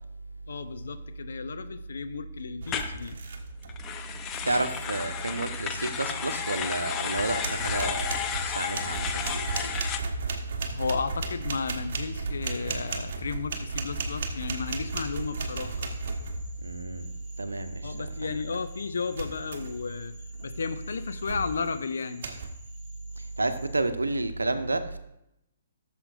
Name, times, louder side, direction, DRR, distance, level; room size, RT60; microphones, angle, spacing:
voice 1, 0.5-3.2 10.7-15.9 17.8-20.1 20.4-22.3, left 5 dB, 65° left, 9 dB, 0.6 m, -33 dB
sound 1, 2.6-3.8 4.1-4.6 6.5-6.6 7.1-16.7 19.1-19.9 20.3-20.6 21.2-21.7 22.2-22.5, right 3 dB, 50° right, 1.2 m, -35 dB
sound 2, 2.7-2.9 3.7-10.0, left 8 dB, 20° left, 0.6 m, -33 dB
voice 2, 4.4-8.2 8.4-9.7 16.6-17.1 17.4-18.3 23.2-25.0, right 2 dB, 80° right, 9 dB, 0.8 m, -30 dB
Cricket / Frog, 14.5-23.8, right 1 dB, 5° left, 2.8 m, -54 dB
15.5 x 6.9 x 2.5 m, 0.83 s
figure-of-eight pair, 125°, 0 cm